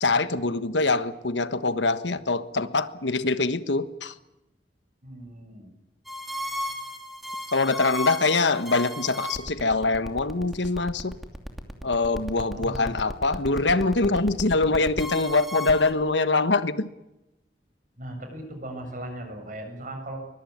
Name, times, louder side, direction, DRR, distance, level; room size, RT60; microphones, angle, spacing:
voice 1, 0.0-4.1 7.5-11.1 11.8-16.9, left 3 dB, 85° left, 12 dB, 1.4 m, -24 dB
voice 2, 5.0-5.7 12.5-13.0 18.0-20.2, right 1 dB, 50° right, 6 dB, 7.3 m, -38 dB
sound 1, 6.1-15.9, equal, ahead, 2.7 m, -34 dB
23.0 x 22.0 x 9.6 m, 0.96 s
head